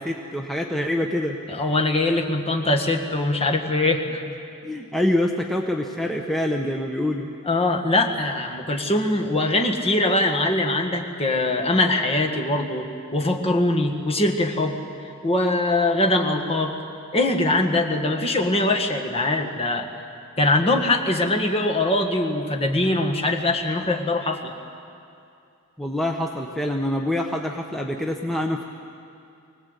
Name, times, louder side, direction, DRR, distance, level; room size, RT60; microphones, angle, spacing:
voice 1, 0.0-1.4 4.6-7.3 25.8-28.7, left 1 dB, ahead, 1 dB, 1.0 m, -25 dB
voice 2, 1.5-4.2 7.4-14.8 15.2-16.8 17.1-19.9 20.4-24.5, left 2 dB, 25° left, 2 dB, 1.8 m, -22 dB
24.5 x 19.0 x 8.2 m, 2.5 s
head